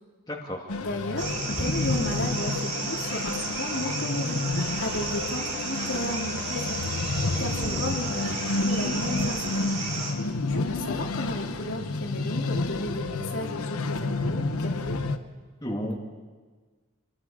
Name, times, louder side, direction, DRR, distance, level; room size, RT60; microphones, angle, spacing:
voice 1, 0.3-0.6 7.6-7.8 15.6-15.9, equal, 20° left, -2 dB, 2.2 m, -32 dB
sound 1, 0.7-15.2, left 3 dB, 85° left, 1.0 m, -30 dB
voice 2, 0.8-4.4 4.8-6.9 7.4-9.5 10.5-15.0, left 1 dB, 60° left, 0 dB, 2.8 m, -33 dB
sound 2, 1.2-10.1, right 3 dB, 30° right, 3.1 m, -33 dB
27.5 x 20.0 x 5.0 m, 1.4 s
head